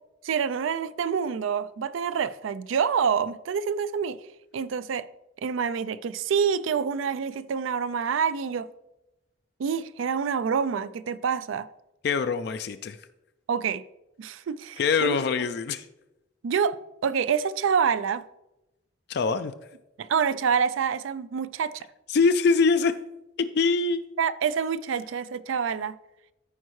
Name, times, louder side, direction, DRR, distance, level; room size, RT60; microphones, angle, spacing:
voice 1, 0.2-4.2 4.5-5.1 5.4-8.7 9.6-11.7 13.5-13.8 14.2-15.2 16.4-16.8 17.0-18.2 20.0-21.9 24.2-25.9, right 6 dB, 80° right, 0.4 m, -27 dB
voice 2, 12.0-13.0 14.8-15.9 19.1-19.5 22.1-22.9 23.5-24.0, left 4 dB, 55° left, 0.3 m, -23 dB
13.5 x 4.5 x 3.1 m
head